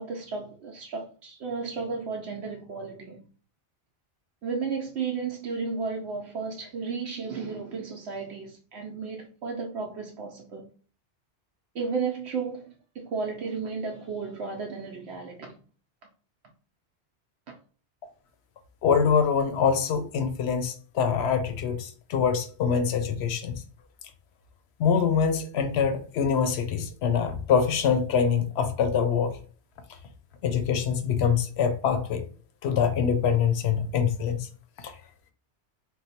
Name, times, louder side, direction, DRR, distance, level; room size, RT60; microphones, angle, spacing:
voice 1, 0.0-3.3 4.4-10.7 11.7-15.5, right 5 dB, 70° right, 0.8 m, -33 dB
voice 2, 18.8-23.6 24.8-29.4 30.4-32.2 32.6-34.5 34.8-34.9, left 6 dB, 70° left, 0.8 m, -24 dB
3.1 x 2.1 x 4.1 m
omnidirectional pair, 1.2 m